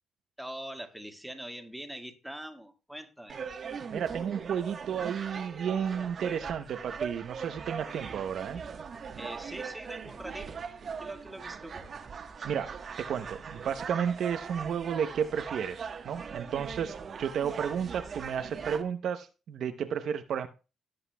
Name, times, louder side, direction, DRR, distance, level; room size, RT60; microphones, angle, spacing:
voice 1, 0.4-3.4 9.2-10.6 11.0-11.9, equal, 5° right, 1.7 m, -43 dB
sound 1, 3.3-18.8, right 6 dB, 50° right, 1.2 m, -40 dB
voice 2, 3.9-8.6 12.4-20.5, right 8 dB, 65° right, 0.7 m, -32 dB
17.0 x 7.9 x 2.2 m
cardioid pair, 90°, 0 cm